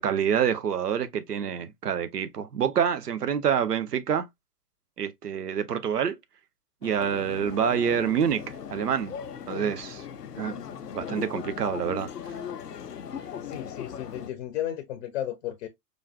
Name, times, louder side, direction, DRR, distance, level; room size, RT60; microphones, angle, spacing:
voice 1, 0.0-4.2 5.0-6.1 6.8-9.1 9.5-10.0 10.4-10.6 10.9-12.1, right 8 dB, 80° right, 0.8 m, -27 dB
sound 1, 6.8-14.3, left 8 dB, 80° left, 0.7 m, -38 dB
voice 2, 13.4-15.7, left 12 dB, 45° left, 0.7 m, -34 dB
5.0 x 2.5 x 2.2 m
figure-of-eight pair, 110°, 47 cm